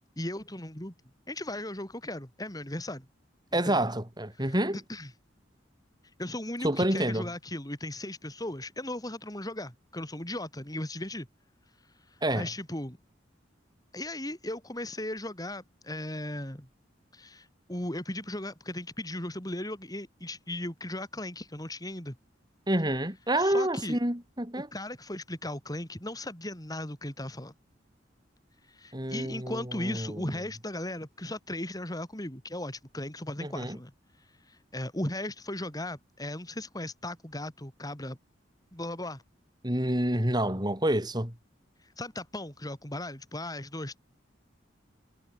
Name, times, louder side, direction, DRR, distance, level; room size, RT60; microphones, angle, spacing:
voice 1, 0.2-0.9 1.3-3.1 3.5-3.8 4.9-5.1 6.2-11.3 12.3-13.0 13.9-16.7 17.1-22.2 23.4-24.0 24.7-27.5 28.7-33.9 34.5-38.2 38.7-39.2 42.0-44.0, left 1 dB, 20° left, 5.8 m, -37 dB
voice 2, 3.5-4.8 6.6-7.3 12.2-12.5 22.7-24.7 28.9-30.3 33.4-33.8 39.6-41.3, right 1 dB, 20° right, 6.0 m, -28 dB
head